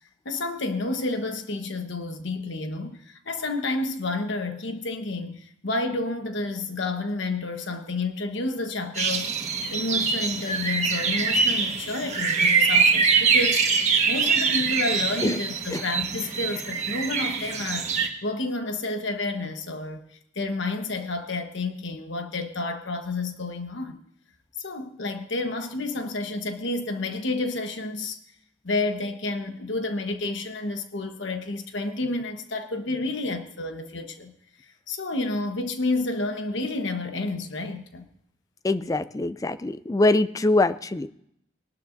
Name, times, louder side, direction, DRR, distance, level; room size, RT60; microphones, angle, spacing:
voice 1, 0.2-9.3 9.7-17.9 18.2-20.1 20.3-24.0 24.6-28.2 28.6-34.3 34.6-38.1, left 2 dB, 65° left, 6 dB, 1.2 m, -30 dB
sound 1, 9.0-18.1, right 5 dB, 35° right, 1.5 m, -24 dB
voice 2, 38.6-41.1, left 2 dB, 15° left, 14 dB, 0.4 m, -23 dB
21.0 x 12.0 x 2.6 m, 0.74 s
head